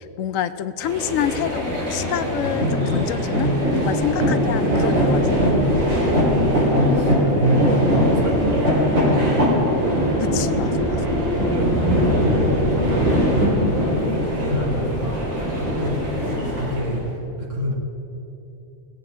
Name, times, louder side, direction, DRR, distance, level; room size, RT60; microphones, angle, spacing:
voice 1, 0.0-5.5 10.2-10.7 16.3-16.5, left 10 dB, 80° left, 13 dB, 1.0 m, -27 dB
sound 1, 0.8-17.1, equal, 85° right, 3.6 m, -21 dB
voice 2, 4.2-4.5 6.2-10.6 11.4-16.3 16.6-17.1 17.4-17.7, equal, 65° right, 2 dB, 2.1 m, -28 dB
17.0 x 7.6 x 8.6 m, 2.9 s
omnidirectional pair, 1.4 m